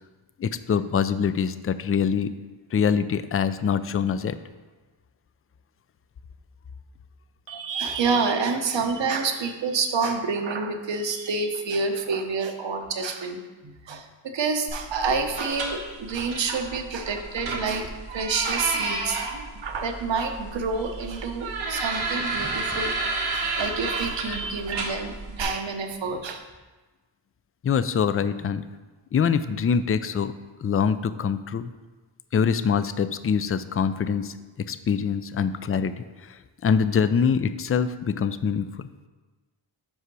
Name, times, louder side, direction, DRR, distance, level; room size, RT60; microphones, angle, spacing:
voice 1, 0.4-2.3 2.7-4.4 24.3-24.4 27.6-28.6 29.1-30.3 30.6-31.7 32.3-38.9, left 6 dB, 30° left, 13 dB, 0.4 m, -24 dB
voice 2, 7.5-19.3 19.6-26.4, right 4 dB, 65° right, 6 dB, 0.9 m, -28 dB
sound 1, 14.7-25.4, right 3 dB, 80° right, 1.4 m, -31 dB
sound 2, 22.0-23.9 24.2-26.6, right 1 dB, 10° right, 1.0 m, -47 dB
5.5 x 5.0 x 6.1 m, 1.3 s
cardioid pair, 55°, 48 cm